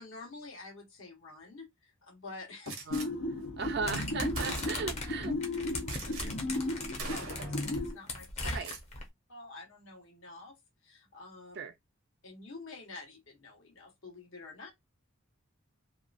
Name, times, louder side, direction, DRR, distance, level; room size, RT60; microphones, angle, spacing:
voice 1, 0.0-3.0 3.6-3.7 6.0-8.6 9.3-10.5 10.8-11.7 12.2-14.7, left 3 dB, 70° left, 1.2 m, -48 dB
Gunshot gunfire, 2.7-3.1 3.9-4.0 4.3-5.0 5.8-6.3 6.6-6.7 7.0-7.7 8.5-8.9, right 5 dB, 80° right, 0.9 m, -42 dB
sound 1, 2.9-7.9, left 2 dB, 85° left, 0.8 m, -35 dB
voice 2, 3.6-5.4 8.5-8.7 11.5-11.7, right 5 dB, 50° right, 0.4 m, -36 dB
sound 2, 3.9-9.0, left 2 dB, 30° left, 0.7 m, -38 dB
2.9 x 2.3 x 2.5 m
head